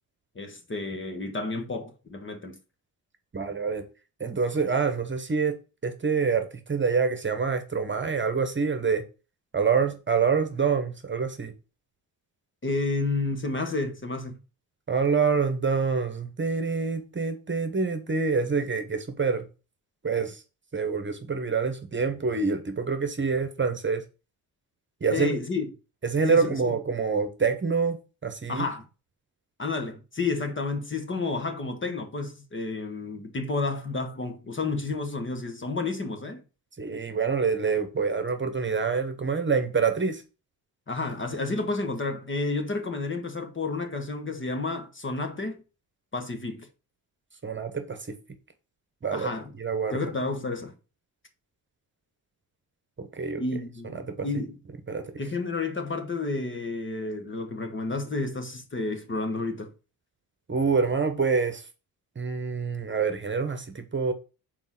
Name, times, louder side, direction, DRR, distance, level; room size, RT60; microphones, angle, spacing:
voice 1, 0.3-2.6 12.6-14.4 25.1-25.7 26.3-26.7 28.5-28.8 29.6-36.4 40.9-45.6 46.1-46.7 49.1-49.5 49.9-50.7 53.4-54.6 55.2-59.7, left 3 dB, 30° left, 1.5 m, -31 dB
voice 2, 3.3-3.9 4.2-5.6 5.8-9.0 9.5-11.5 14.9-19.5 20.0-20.4 20.7-24.0 25.0-25.4 26.0-28.7 36.8-40.2 47.4-48.2 49.0-49.3 49.6-50.0 53.0-53.4 53.9-54.3 54.9-55.1 60.5-61.6 62.1-64.1, right 5 dB, 30° right, 1.3 m, -26 dB
5.3 x 4.4 x 6.1 m
cardioid pair, 85°, 40 cm